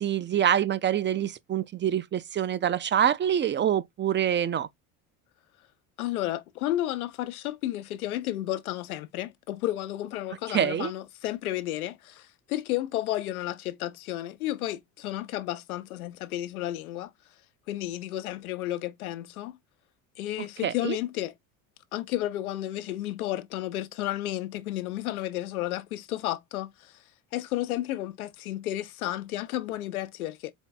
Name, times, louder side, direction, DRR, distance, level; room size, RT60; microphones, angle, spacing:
voice 1, 0.0-4.7 10.5-10.9 20.6-21.0, right 9 dB, 30° right, 0.4 m, -26 dB
voice 2, 6.0-17.1 17.7-19.6 20.2-21.3 21.9-26.9 27.3-30.5, left 14 dB, 90° left, 0.7 m, -32 dB
4.4 x 3.4 x 2.3 m
hypercardioid pair, 75°, 43 cm